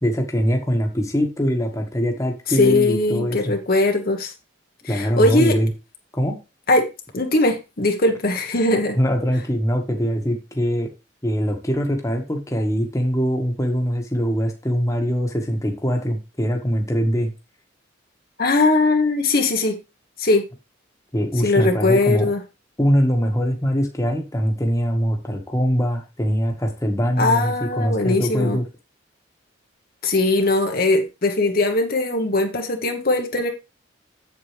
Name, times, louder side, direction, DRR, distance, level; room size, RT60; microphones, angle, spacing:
voice 1, 0.0-3.5 4.9-5.7 6.1-6.4 9.0-10.9 11.2-17.3 21.1-22.3 22.8-28.6, equal, 15° left, 1.5 m, -22 dB
voice 2, 2.5-4.3 4.8-5.6 6.7-6.9 7.1-9.0 18.4-19.8 20.2-20.4 21.4-22.4 27.2-28.6 30.0-33.5, left 2 dB, 50° left, 1.3 m, -20 dB
8.0 x 8.0 x 3.4 m
head